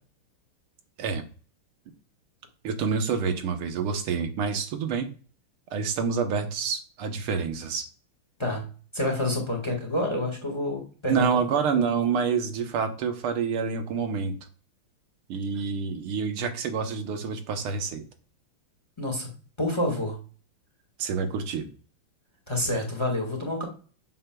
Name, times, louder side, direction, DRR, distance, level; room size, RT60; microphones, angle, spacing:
voice 1, 2.6-5.1 5.7-7.8 11.1-14.4 15.3-18.0 21.0-21.7, right 6 dB, 85° right, 6 dB, 1.8 m, -27 dB
voice 2, 8.9-11.4 19.0-19.3 19.6-20.2 22.5-23.6, left 1 dB, 15° left, 1 dB, 1.4 m, -28 dB
7.6 x 6.7 x 2.3 m, 0.38 s
omnidirectional pair, 2.3 m